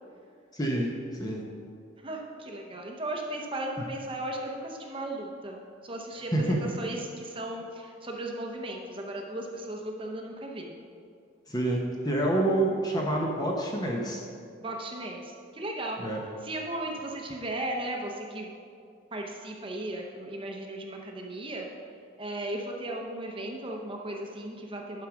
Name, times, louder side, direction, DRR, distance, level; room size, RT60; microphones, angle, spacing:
voice 1, 0.5-0.9 1.2-1.4 6.3-6.6 11.5-14.2 16.0-16.2, right 1 dB, 20° left, -1 dB, 0.9 m, -27 dB
voice 2, 2.0-5.6 5.8-10.7 14.6-16.0 16.4-18.5 19.1-21.6 22.2-25.1, right 1 dB, 25° right, 1 dB, 0.8 m, -36 dB
11.0 x 4.8 x 5.9 m, 2.3 s
head